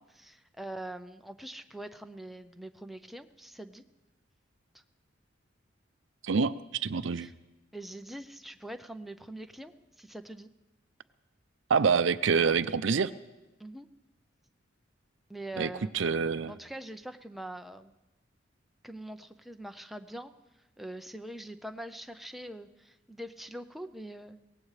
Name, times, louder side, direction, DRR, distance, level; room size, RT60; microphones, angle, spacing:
voice 1, 0.0-3.8 7.1-7.3 7.7-10.5 13.6-13.9 15.3-16.0 16.4-17.9 18.8-20.3 20.8-24.4, right 1 dB, ahead, 7 dB, 0.5 m, -43 dB
voice 2, 6.2-7.3 11.7-13.1 15.6-16.5, right 5 dB, 75° right, 14 dB, 0.5 m, -26 dB
23.0 x 18.0 x 3.3 m, 1.0 s
head